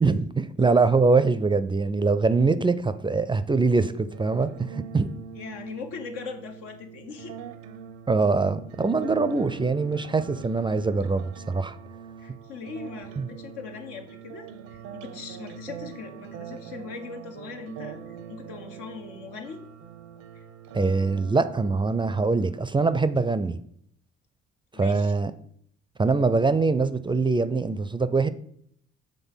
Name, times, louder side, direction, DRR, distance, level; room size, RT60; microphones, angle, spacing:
voice 1, 0.0-5.2 8.1-11.8 13.2-13.3 20.7-23.6 24.8-25.3 26.0-28.3, right 4 dB, 15° right, 13 dB, 0.4 m, -23 dB
sound 1, 4.1-23.1, right 8 dB, 80° right, 0.6 m, -43 dB
voice 2, 5.3-7.4 12.2-19.6 20.3-20.4 24.7-25.1, left 5 dB, 90° left, 5 dB, 0.9 m, -40 dB
6.2 x 3.4 x 5.5 m, 0.68 s
supercardioid pair, 60°, 30 cm